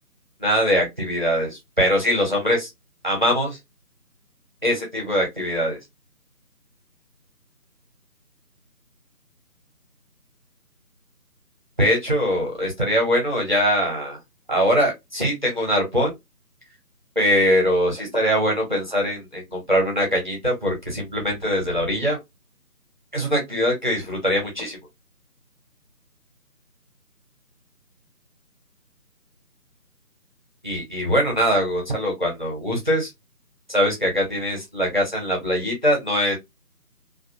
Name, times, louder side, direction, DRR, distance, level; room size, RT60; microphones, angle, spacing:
voice 1, 0.4-2.7 3.0-3.6 4.6-5.8 11.8-14.2 14.5-16.1 17.2-22.2 23.1-24.8 30.6-33.1 33.7-36.4, equal, 30° right, 0.7 m, -22 dB
2.3 x 2.1 x 2.6 m
figure-of-eight pair, 165°, 46 cm